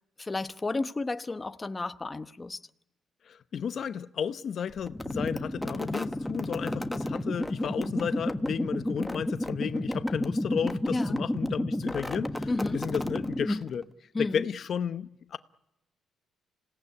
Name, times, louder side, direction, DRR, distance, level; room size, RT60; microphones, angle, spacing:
voice 1, 0.2-2.6 10.9-11.1 12.5-12.8 14.1-14.4, left 3 dB, 20° left, 1.0 m, -32 dB
voice 2, 3.3-13.9 14.2-15.4, left 7 dB, 60° left, 0.9 m, -33 dB
sound 1, 4.8-13.8, left 1 dB, 5° left, 1.4 m, -31 dB
27.0 x 17.5 x 9.7 m
cardioid pair, 90°, 0 cm